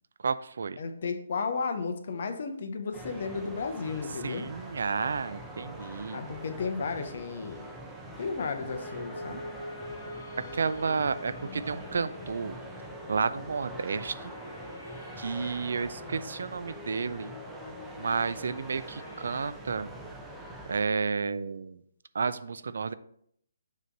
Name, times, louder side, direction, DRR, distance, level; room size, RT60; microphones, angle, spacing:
voice 1, 0.2-0.8 4.2-6.3 10.5-12.6 13.1-14.3 15.2-17.3 18.0-19.9 20.7-21.8 22.1-22.9, right 5 dB, 70° right, 13 dB, 0.4 m, -31 dB
voice 2, 0.8-4.5 6.1-7.7 8.2-9.4, left 5 dB, 55° left, 6 dB, 0.9 m, -33 dB
sound 1, 2.9-20.8, right 1 dB, 5° right, 0.7 m, -44 dB
sound 2, 8.4-19.5, left 2 dB, 35° left, 1.9 m, -44 dB
6.6 x 3.1 x 5.2 m, 0.68 s
hypercardioid pair, 150°, 0 cm